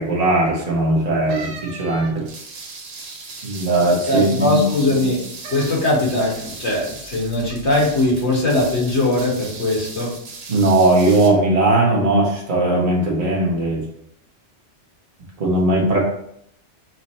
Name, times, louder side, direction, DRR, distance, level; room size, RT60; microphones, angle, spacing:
voice 1, 0.0-2.3 3.4-4.6 10.5-13.8 15.4-16.0, right 2 dB, 35° right, -3 dB, 0.9 m, -18 dB
sound 1, 1.3-2.5 5.4-5.8 6.4-6.8 7.5-7.6, right 4 dB, 85° right, 1.1 m, -37 dB
sound 2, 2.3-11.3, right 3 dB, 65° right, 1.0 m, -37 dB
voice 2, 4.1-5.2 5.5-10.1, left 2 dB, 70° left, -3 dB, 1.6 m, -20 dB
5.9 x 2.0 x 4.1 m, 0.72 s
omnidirectional pair, 1.2 m